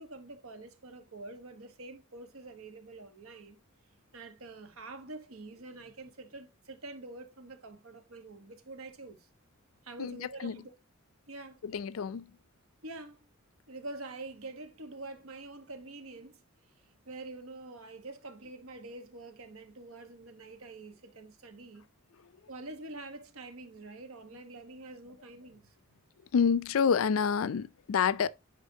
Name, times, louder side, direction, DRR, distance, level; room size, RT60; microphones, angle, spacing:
voice 1, 0.0-3.6 4.1-9.3 9.8-10.7 11.3-11.6 12.8-13.3 13.7-16.4 17.0-21.9 22.5-25.8, right 2 dB, 85° right, 1.3 m, -46 dB
voice 2, 10.0-10.6 11.6-12.3 26.3-28.3, left 6 dB, 75° left, 0.4 m, -28 dB
9.7 x 5.1 x 2.8 m
head